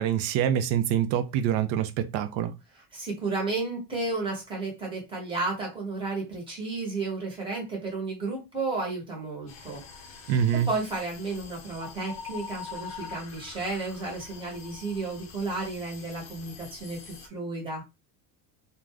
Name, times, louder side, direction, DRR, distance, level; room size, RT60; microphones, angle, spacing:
voice 1, 0.0-2.5 10.3-10.7, right 9 dB, 85° right, 0.6 m, -25 dB
voice 2, 2.9-10.2 10.5-17.8, right 3 dB, 10° right, 0.9 m, -33 dB
sound 1, 9.5-17.3, left 6 dB, 40° left, 0.5 m, -44 dB
2.5 x 2.2 x 3.3 m
cardioid pair, 180°, 46 cm